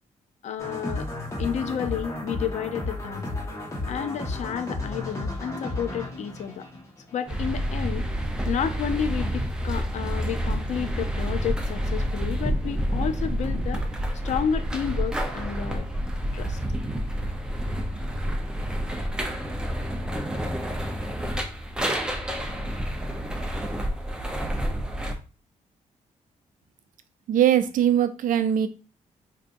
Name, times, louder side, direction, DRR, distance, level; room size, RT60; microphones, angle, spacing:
voice 1, 0.4-1.1 1.4-3.3 3.9-6.7 7.1-8.1 8.5-13.8 14.2-15.9 16.3-16.6, left 8 dB, 60° left, 9 dB, 0.5 m, -31 dB
sound 1, 0.6-7.4, left 2 dB, 20° left, 1.2 m, -33 dB
sound 2, 7.3-25.1, equal, 5° right, 0.6 m, -29 dB
voice 2, 27.3-28.7, right 10 dB, 80° right, 11 dB, 0.4 m, -21 dB
4.6 x 2.7 x 2.5 m, 0.34 s
cardioid pair, 115°, 13 cm